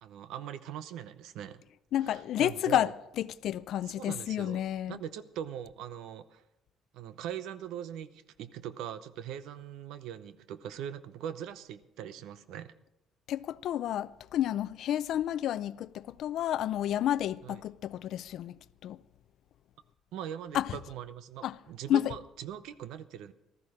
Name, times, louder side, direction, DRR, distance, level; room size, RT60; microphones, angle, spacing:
voice 1, 0.0-1.6 2.0-2.9 3.8-6.4 6.9-12.7 17.4-17.6 20.1-23.3, right 9 dB, 80° right, 0.7 m, -41 dB
voice 2, 1.9-5.0 13.3-19.0 20.5-20.7 21.4-21.6 21.9-22.1, left 11 dB, 65° left, 0.4 m, -31 dB
15.0 x 13.5 x 5.0 m
cardioid pair, 125°, 0 cm